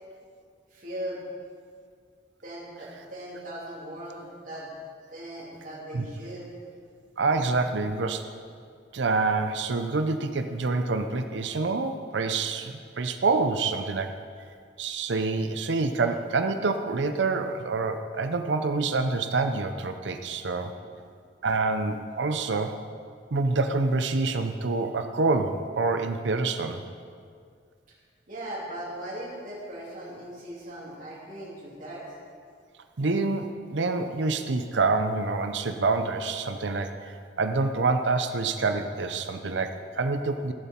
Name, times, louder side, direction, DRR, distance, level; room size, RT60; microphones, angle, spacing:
voice 1, 0.7-1.2 2.4-4.7 5.1-6.5 20.8-20.9 28.3-32.0, right 1 dB, 45° right, -5 dB, 3.0 m, -39 dB
voice 2, 7.2-8.2 8.9-14.1 14.8-20.7 21.4-22.8 23.3-26.8 33.0-40.5, right 3 dB, 70° right, 7 dB, 0.6 m, -27 dB
15.5 x 7.1 x 4.4 m, 2.2 s
head